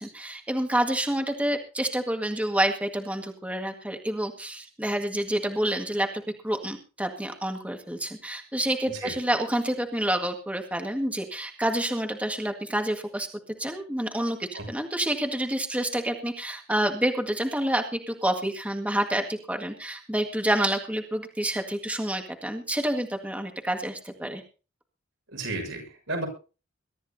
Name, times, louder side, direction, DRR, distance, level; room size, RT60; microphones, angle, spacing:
voice 1, 0.0-13.3 13.6-24.4, right 1 dB, 5° right, 4 dB, 1.8 m, -28 dB
voice 2, 25.3-26.3, right 2 dB, 75° right, 2 dB, 6.7 m, -33 dB
22.5 x 13.0 x 2.8 m, 0.35 s
head